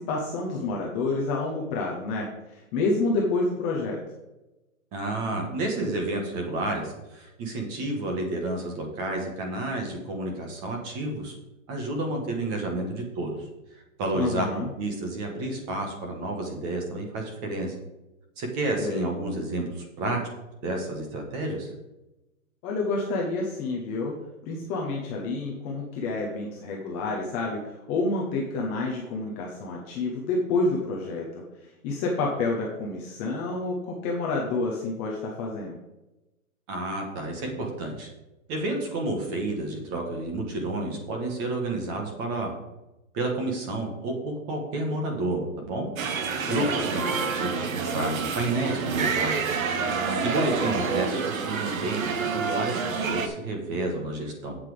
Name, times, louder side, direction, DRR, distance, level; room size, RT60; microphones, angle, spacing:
voice 1, 0.0-4.0 14.1-14.7 18.8-19.1 22.6-24.1 24.5-35.8 46.5-47.0, left 3 dB, 15° left, -2 dB, 0.8 m, -29 dB
voice 2, 4.9-11.3 11.7-13.4 13.7-17.7 18.4-20.2 20.6-21.7 36.7-38.1 38.5-42.5 43.1-45.9 46.4-47.0 47.3-49.5 50.2-54.6, right 2 dB, 20° right, 2 dB, 1.6 m, -30 dB
sound 1, 46.0-53.3, right 5 dB, 70° right, 1.3 m, -28 dB
7.8 x 7.4 x 5.0 m, 0.99 s
hypercardioid pair, 165°, 42 cm